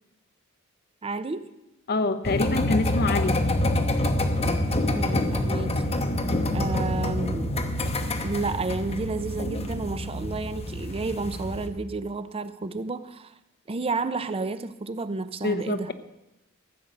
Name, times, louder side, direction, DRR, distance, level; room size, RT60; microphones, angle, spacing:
voice 1, 1.0-1.5 5.0-5.8 6.5-7.6 7.8-13.3 13.7-15.9, right 3 dB, 25° right, 12 dB, 0.5 m, -31 dB
voice 2, 1.9-3.4 15.4-15.9, left 2 dB, 45° left, 10 dB, 0.9 m, -26 dB
sound 1, 2.2-11.7, left 1 dB, 30° left, 1.0 m, -26 dB
15.0 x 8.5 x 6.5 m, 0.93 s
head